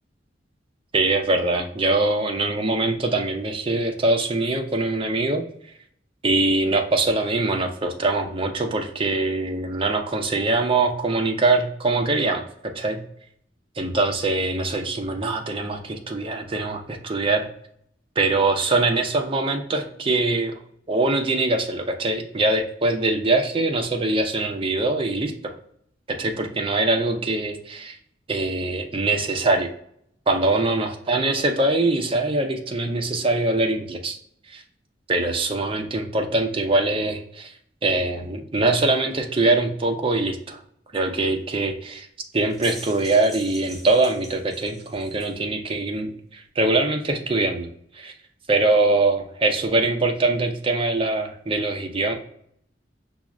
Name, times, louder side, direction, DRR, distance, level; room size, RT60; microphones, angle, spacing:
voice 1, 0.9-5.4 6.2-13.0 13.8-17.5 18.2-20.5 20.9-25.5 26.1-28.0 28.3-29.7 30.3-34.2 34.5-34.6 35.1-37.5 37.8-40.6 40.9-42.1 42.3-47.7 48.0-48.1 48.5-52.1, right 2 dB, 30° right, 3 dB, 0.5 m, -23 dB
sound 1, 42.3-45.4, equal, ahead, 0.9 m, -43 dB
5.9 x 2.1 x 2.3 m, 0.68 s
head